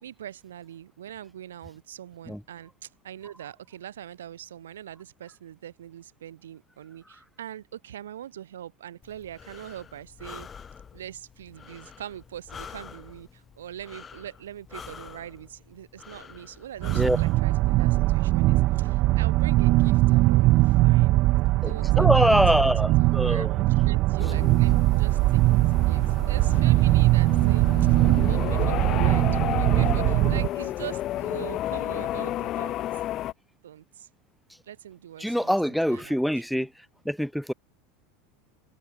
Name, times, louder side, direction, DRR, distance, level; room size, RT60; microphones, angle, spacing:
voice 1, 0.0-10.5 10.9-21.2 21.5-22.7 23.0-28.0 28.3-29.3 29.6-32.8 33.6-34.1 34.6-35.6 35.9-36.7, right 11 dB, 85° right, 4.5 m, -42 dB
Breathing, 9.0-17.4, left 6 dB, 25° left, 2.8 m, -46 dB
sound 1, 16.8-30.5, right 19 dB, 55° right, 0.5 m, -21 dB
voice 2, 21.6-23.6 35.2-36.7 37.0-37.5, equal, ahead, 1.3 m, -24 dB
sound 2, 24.2-33.3, left 14 dB, 45° left, 4.7 m, -32 dB
hypercardioid pair, 95°, 0 cm